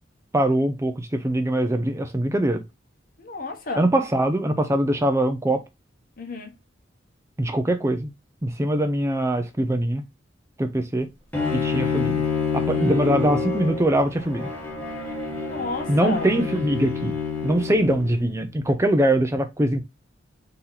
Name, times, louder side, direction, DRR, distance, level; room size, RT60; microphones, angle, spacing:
voice 1, 0.3-2.6 3.8-5.6 7.4-8.1 8.4-10.0 10.6-11.1 11.5-12.1 12.5-14.5 15.9-17.1 17.4-19.8, right 1 dB, 15° right, 0.5 m, -22 dB
voice 2, 3.2-3.8 6.2-6.5 15.4-16.3, left 3 dB, 50° left, 1.0 m, -31 dB
Bowed string instrument, 11.3-18.4, left 5 dB, 10° left, 1.2 m, -27 dB
4.0 x 2.9 x 3.9 m
head